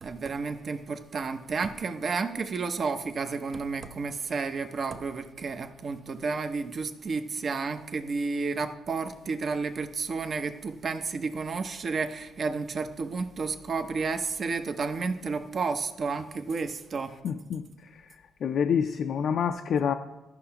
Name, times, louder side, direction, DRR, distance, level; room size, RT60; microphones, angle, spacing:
voice 1, 0.0-17.2, right 4 dB, 45° right, 9 dB, 0.7 m, -31 dB
voice 2, 17.2-17.7 18.4-19.9, left 7 dB, 65° left, 5 dB, 0.4 m, -27 dB
14.5 x 5.7 x 2.9 m, 1.0 s
cardioid pair, 90°, 0 cm